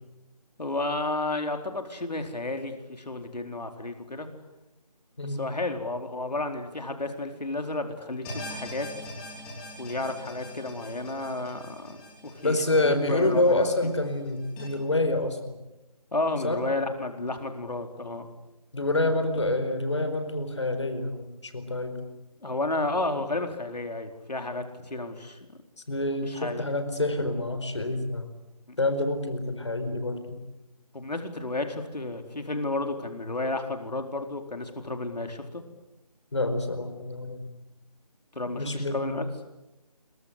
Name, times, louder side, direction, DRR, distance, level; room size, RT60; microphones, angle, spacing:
voice 1, 0.6-4.3 5.2-8.9 9.8-12.0 12.2-12.6 12.8-13.7 16.1-18.3 22.4-25.4 26.2-26.6 30.9-35.6 38.3-39.5, left 2 dB, 85° left, 5 dB, 4.2 m, -32 dB
sound 1, 8.2-14.6, left 1 dB, 5° left, 3.2 m, -42 dB
voice 2, 12.4-15.5 16.4-16.6 18.7-22.0 25.9-28.3 28.8-30.4 36.3-37.5 38.6-39.1, left 2 dB, 45° left, 9 dB, 4.7 m, -27 dB
27.0 x 24.0 x 8.3 m, 0.97 s
figure-of-eight pair, 175°, 20 cm